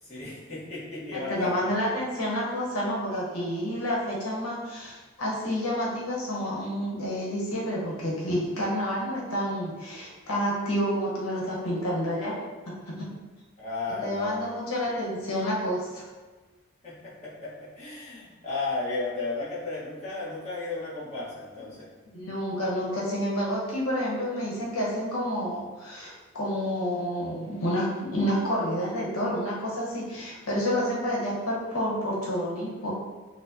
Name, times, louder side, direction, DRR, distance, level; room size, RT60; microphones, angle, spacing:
voice 1, 0.0-1.7 13.6-14.4 14.8-14.9 16.8-21.9, left 3 dB, 30° left, -10 dB, 1.2 m, -34 dB
voice 2, 1.1-12.3 12.6-13.1 14.0-16.1 22.1-32.9, equal, 85° left, -5 dB, 1.0 m, -29 dB
4.4 x 2.2 x 2.7 m, 1.3 s
head